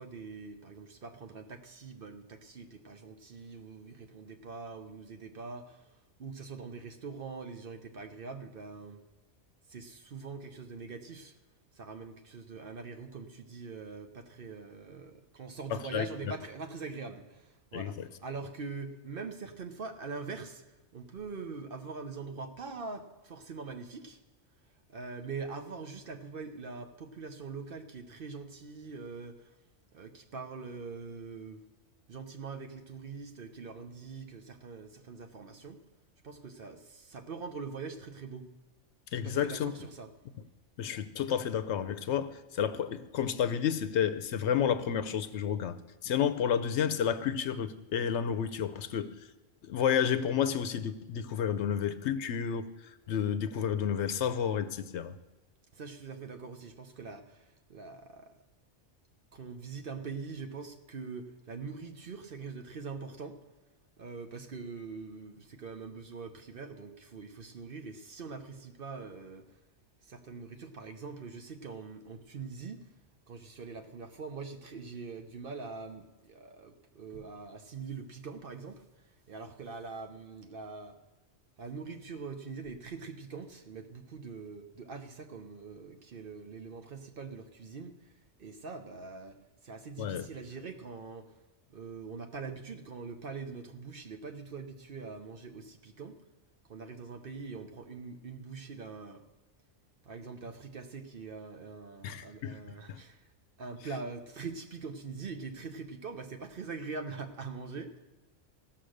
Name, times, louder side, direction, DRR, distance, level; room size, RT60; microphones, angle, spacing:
voice 1, 0.0-5.8 6.2-9.0 9.7-11.3 11.8-20.6 20.9-24.2 24.9-29.3 29.9-31.6 32.1-35.8 36.2-38.5 39.2-40.1 55.7-57.4 57.7-58.4 59.3-63.4 64.0-69.5 70.1-72.9 73.3-78.8 79.3-81.0 81.6-87.9 88.4-89.4 89.6-91.3 91.7-96.2 96.7-99.2 100.0-103.2 103.6-108.0, right 4 dB, 50° right, 6 dB, 0.9 m, -43 dB
voice 2, 15.7-16.1 17.7-18.1 39.1-39.7 40.8-45.8 46.0-49.1 49.7-52.7 53.1-55.1 90.0-90.3 102.0-102.6 102.9-103.0, left 8 dB, 70° left, 12 dB, 0.9 m, -31 dB
15.0 x 5.9 x 6.4 m, 1.1 s
omnidirectional pair, 1.3 m